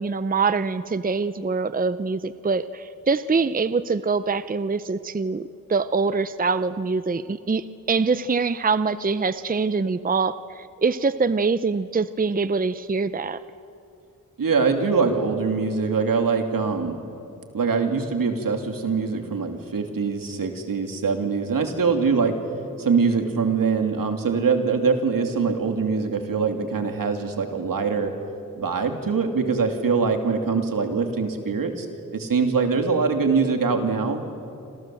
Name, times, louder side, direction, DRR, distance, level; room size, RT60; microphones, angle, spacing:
voice 1, 0.0-5.4 5.7-13.4, right 4 dB, 25° right, 14 dB, 0.6 m, -24 dB
voice 2, 14.4-17.0 17.5-22.4 22.8-28.1 28.6-31.9 32.1-34.2, right 5 dB, 80° right, 5 dB, 2.9 m, -23 dB
27.5 x 27.0 x 7.8 m, 2.6 s
wide cardioid pair, 85°, 33 cm